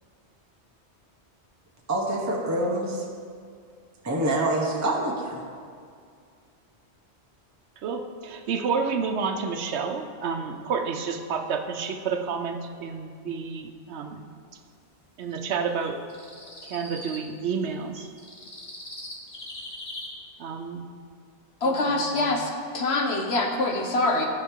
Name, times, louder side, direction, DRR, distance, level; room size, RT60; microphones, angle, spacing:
voice 1, 1.9-3.0 4.0-5.4, right 1 dB, 15° right, -2 dB, 0.8 m, -26 dB
voice 2, 7.8-14.2 15.2-16.0 16.6-18.1 20.4-20.8 21.6-22.3, right 5 dB, 80° right, 6 dB, 0.9 m, -30 dB
sound 1, 15.8-17.2 18.0-20.1, left 1 dB, 30° left, 1.3 m, -40 dB
voice 3, 21.6-24.3, left 2 dB, 70° left, 2 dB, 1.2 m, -25 dB
14.0 x 4.9 x 3.6 m, 2.2 s
omnidirectional pair, 1.1 m